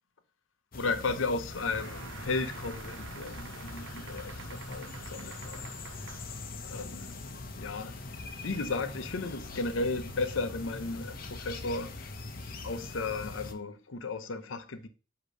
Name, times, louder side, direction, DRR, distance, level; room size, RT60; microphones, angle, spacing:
voice 1, 0.7-5.7 6.6-7.1 7.5-7.9 8.4-11.9 12.6-14.9, left 3 dB, 90° left, 0.7 m, -34 dB
sound 1, 0.7-13.5, left 3 dB, 50° left, 0.8 m, -42 dB
sound 2, 1.5-6.5, right 7 dB, 80° right, 0.4 m, -48 dB
8.2 x 2.9 x 5.2 m
head